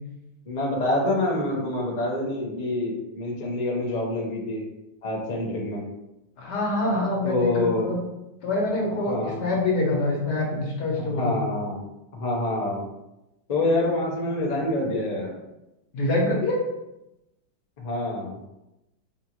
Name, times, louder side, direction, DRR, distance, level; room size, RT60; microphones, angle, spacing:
voice 1, 0.5-4.6 5.0-5.9 7.2-7.9 9.1-9.5 11.0-11.8 12.1-12.8 13.5-15.4 17.8-18.4, left 2 dB, 50° left, -3 dB, 0.4 m, -26 dB
voice 2, 6.4-8.0 8.4-11.3 15.9-16.6, left 2 dB, 65° left, -3 dB, 1.5 m, -25 dB
5.0 x 2.4 x 2.9 m, 0.93 s
omnidirectional pair, 2.0 m